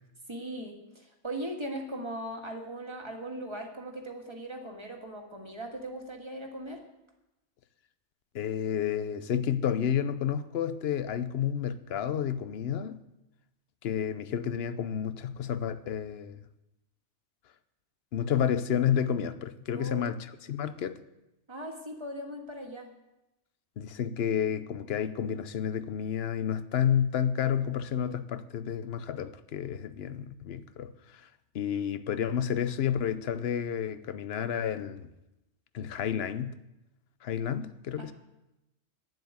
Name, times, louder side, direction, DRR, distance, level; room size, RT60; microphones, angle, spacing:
voice 1, 0.3-6.8 19.8-20.1 21.5-22.9 38.0-38.1, right 1 dB, 25° right, 1.7 m, -39 dB
voice 2, 8.3-13.0 13.8-16.4 18.1-21.0 23.8-31.3 31.5-35.1 35.7-36.6 37.2-38.1, left 8 dB, 65° left, 0.9 m, -30 dB
9.5 x 7.8 x 9.4 m
omnidirectional pair, 1.2 m